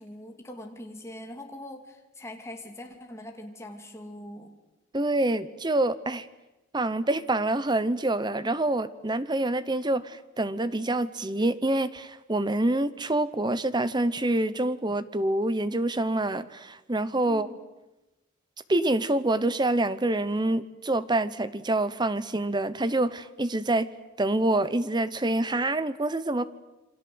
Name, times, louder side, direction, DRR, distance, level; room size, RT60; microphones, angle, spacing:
voice 1, 0.0-4.5 17.2-17.6, left 1 dB, 15° left, 2 dB, 2.7 m, -42 dB
voice 2, 4.9-6.3 6.7-17.5 18.7-23.9 24.2-26.4, right 2 dB, 20° right, 15 dB, 0.9 m, -26 dB
27.5 x 24.5 x 7.9 m, 1.0 s
head